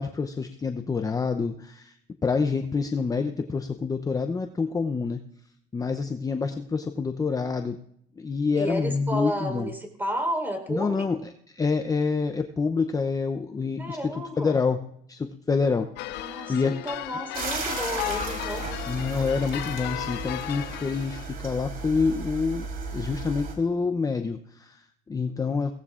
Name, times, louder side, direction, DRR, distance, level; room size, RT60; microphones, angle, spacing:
voice 1, 0.0-2.0 2.2-5.2 5.7-7.8 8.2-9.7 10.7-11.2 11.5-14.0 14.4-14.8 15.1-15.9 16.5-16.8 18.9-22.7 22.9-25.7, left 4 dB, 20° left, 7 dB, 0.6 m, -27 dB
voice 2, 8.5-11.1 13.8-14.6 16.1-18.7, equal, 10° right, 5 dB, 3.9 m, -32 dB
sound 1, 16.0-21.3, left 16 dB, 80° left, 0.5 m, -35 dB
sound 2, 17.3-23.5, right 4 dB, 60° right, 3.8 m, -35 dB
22.0 x 17.5 x 2.5 m, 0.69 s
cardioid pair, 110°, 17 cm